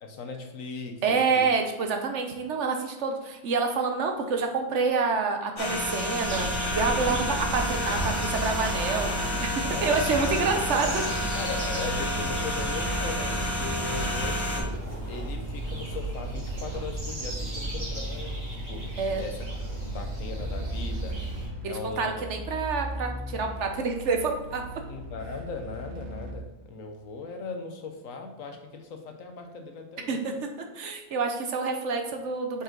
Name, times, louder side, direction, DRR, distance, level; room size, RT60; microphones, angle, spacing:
voice 1, 0.0-1.5 7.0-7.2 9.6-10.0 10.7-10.8 11.3-14.7 15.1-21.2 21.7-22.3 24.9-30.2, left 4 dB, 75° left, 5 dB, 1.3 m, -38 dB
voice 2, 1.0-11.0 19.0-19.2 21.6-24.6 30.1-30.3 30.7-32.6, right 4 dB, 60° right, 4 dB, 1.1 m, -27 dB
sound 1, 5.6-14.6, left 1 dB, 40° left, 1.7 m, -30 dB
sound 2, 6.2-21.5, right 1 dB, 30° right, 2.5 m, -34 dB
sound 3, 20.3-26.3, right 1 dB, 90° right, 1.6 m, -38 dB
6.6 x 5.3 x 3.8 m, 1.0 s
omnidirectional pair, 1.4 m